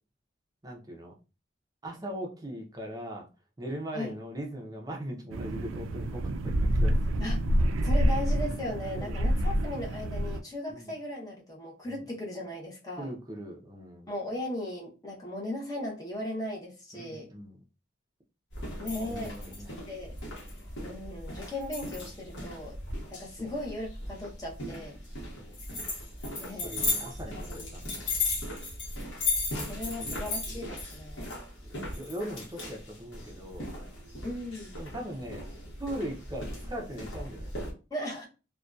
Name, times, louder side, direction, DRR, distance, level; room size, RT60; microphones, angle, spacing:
voice 1, 0.6-1.1 1.8-3.3 3.6-6.9 9.0-9.2 10.7-10.9 13.0-14.1 16.9-17.6 19.0-19.7 20.5-20.7 23.4-23.5 25.4-25.6 26.6-28.0 30.0-30.2 30.5-30.6 31.6-33.7 34.8-35.5 35.8-37.7, right 1 dB, 20° right, 1 dB, 0.5 m, -40 dB
sound 1, 5.3-10.4, equal, 80° right, 0.3 m, -27 dB
voice 2, 7.8-13.1 14.1-17.3 18.8-19.4 19.9-20.2 20.8-22.8 23.1-25.0 26.4-26.7 27.0-27.1 27.5-27.7 29.7-31.3 34.2-34.8 37.9-38.3, left 1 dB, 20° left, -3 dB, 0.7 m, -37 dB
sound 2, 18.5-37.7, left 2 dB, 65° left, 1.0 m, -36 dB
2.6 x 2.2 x 2.3 m, 0.31 s
head